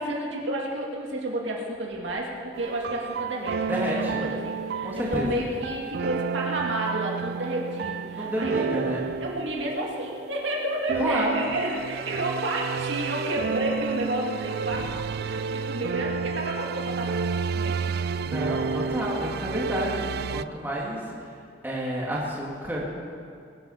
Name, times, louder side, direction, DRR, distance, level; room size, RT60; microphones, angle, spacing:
voice 1, 0.0-8.6 9.2-17.3 17.5-18.9, right 1 dB, 80° right, -2 dB, 2.3 m, -31 dB
sound 1, 2.5-20.4, right 5 dB, 55° right, 0.3 m, -31 dB
voice 2, 3.7-4.2 4.8-5.3 8.1-9.0 11.0-11.5 14.7-14.9 18.2-21.3 21.6-22.8, equal, 10° right, -6 dB, 2.3 m, -30 dB
22.0 x 10.0 x 5.8 m, 2.3 s
head